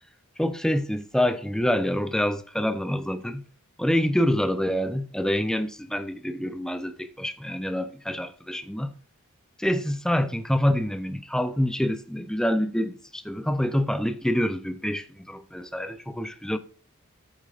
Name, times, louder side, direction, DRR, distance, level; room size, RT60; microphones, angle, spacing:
voice 1, 0.4-3.4 3.8-8.9 9.6-16.6, equal, 5° left, 0.5 m, -26 dB
14.0 x 8.2 x 2.5 m
head